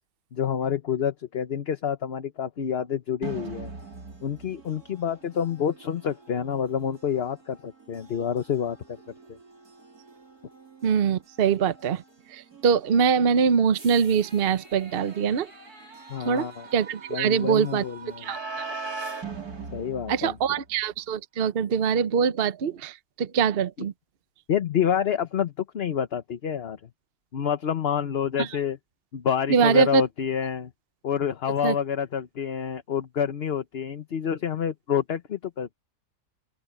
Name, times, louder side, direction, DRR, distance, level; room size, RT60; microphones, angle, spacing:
voice 1, 0.3-3.7 4.2-8.8 9.3-9.4 16.1-16.7 17.1-18.3 19.7-20.6 23.8-23.9 24.5-26.8 27.3-28.8 29.1-30.7 31.0-35.7, left 8 dB, 45° left, 1.0 m, -28 dB
sound 1, 3.2-20.9, right 4 dB, 70° right, 3.9 m, -42 dB
voice 2, 10.8-12.0 12.3-15.5 16.2-17.8 18.2-18.7 20.1-23.9 28.4-28.5 29.5-30.0 31.6-31.7, right 6 dB, 45° right, 0.8 m, -23 dB
open air
omnidirectional pair, 1.7 m